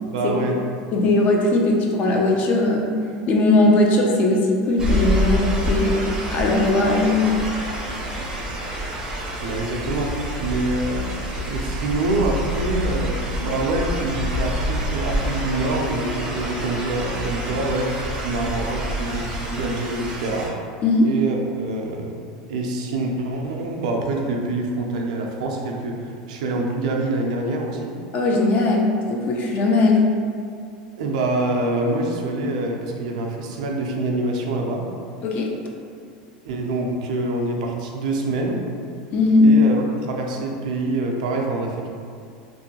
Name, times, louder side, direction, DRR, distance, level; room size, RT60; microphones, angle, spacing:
voice 1, 0.1-0.6 9.4-20.5 21.0-22.2 22.5-27.9 31.0-34.9 36.4-38.6 39.4-41.9, right 2 dB, 75° right, 1 dB, 0.4 m, -26 dB
voice 2, 0.9-2.9 3.3-7.3 20.8-21.1 28.1-30.1 35.2-35.5 39.1-39.5, left 2 dB, 40° left, 0 dB, 0.4 m, -19 dB
sound 1, 4.8-20.5, equal, 20° right, 0.5 m, -27 dB
2.5 x 2.2 x 2.8 m, 2.3 s
supercardioid pair, 120°, 4 cm